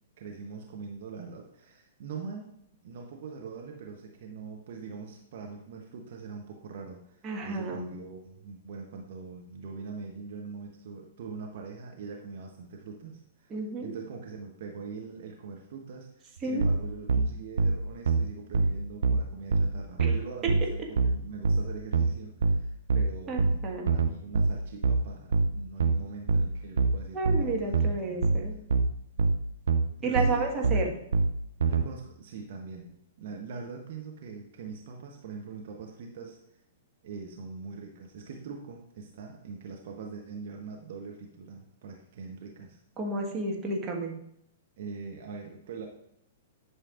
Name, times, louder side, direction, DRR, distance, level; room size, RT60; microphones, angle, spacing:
voice 1, 0.2-27.7 28.1-28.2 30.0-31.0 31.6-36.4 37.0-42.8 44.8-45.9, right 5 dB, 50° right, 1 dB, 1.0 m, -42 dB
voice 2, 7.2-7.9 13.5-13.9 16.4-16.6 23.3-23.9 27.1-28.6 30.0-30.9 43.0-44.1, right 3 dB, 20° right, -1 dB, 1.5 m, -31 dB
sound 1, 16.6-31.9, right 3 dB, 65° right, 0.5 m, -25 dB
10.5 x 6.3 x 2.5 m, 0.73 s
figure-of-eight pair, 105°, 0 cm